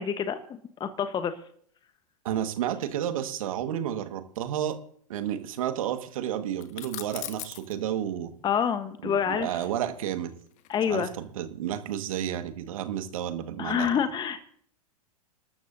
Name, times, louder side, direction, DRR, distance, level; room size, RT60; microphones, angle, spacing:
voice 1, 0.0-1.3 8.4-9.5 10.7-11.1 13.6-14.4, left 7 dB, 25° left, 9 dB, 1.1 m, -27 dB
voice 2, 2.2-4.8 5.1-8.3 9.0-10.3 10.9-13.9, right 10 dB, 65° right, 8 dB, 1.7 m, -31 dB
sound 1, 6.6-7.7 9.6-11.1, left 13 dB, 40° left, 1.5 m, -40 dB
28.0 x 13.5 x 2.7 m, 0.62 s
hypercardioid pair, 100°, 19 cm